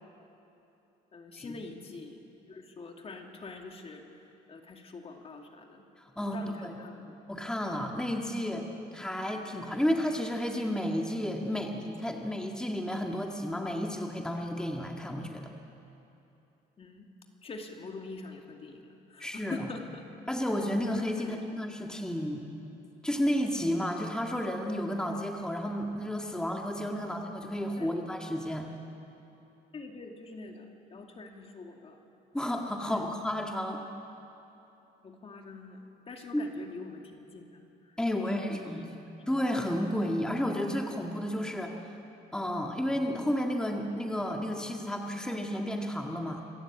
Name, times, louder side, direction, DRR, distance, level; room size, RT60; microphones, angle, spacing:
voice 1, 1.1-4.0 4.5-5.8 6.2-7.2 16.8-17.1 17.4-20.1 21.2-21.4 26.9-27.1 27.8-27.9 29.7-32.0 32.9-33.0 35.0-35.8 36.1-37.6 37.9-38.9, left 3 dB, 35° left, 3 dB, 2.3 m, -45 dB
voice 2, 6.2-6.8 7.3-8.6 8.9-15.5 19.2-19.7 20.3-22.5 23.0-28.7 32.3-33.8 36.3-36.5 38.0-38.9 39.3-41.8 42.3-46.4, equal, 5° left, 1 dB, 1.8 m, -32 dB
26.0 x 14.0 x 8.8 m, 2.9 s
cardioid pair, 110°, 17 cm